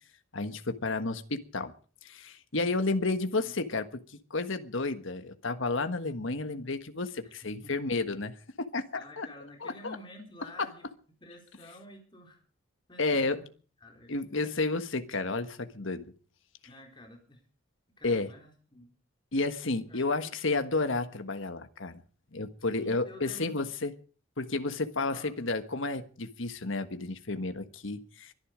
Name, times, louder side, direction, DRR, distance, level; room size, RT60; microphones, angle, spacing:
voice 1, 0.3-1.7 2.0-4.0 4.3-9.3 9.6-10.0 13.0-13.4 14.1-16.1 18.0-18.3 19.3-22.0 22.3-23.9 24.4-28.3, left 3 dB, 70° left, 9 dB, 1.5 m, -31 dB
voice 2, 7.2-7.7 9.0-10.9 11.2-12.4 12.9-13.5 13.8-14.2 16.7-17.4 18.0-18.9 19.9-20.1 22.6-23.6 25.0-25.3, left 1 dB, 25° left, 2 dB, 4.0 m, -50 dB
23.5 x 10.5 x 5.1 m, 0.40 s
head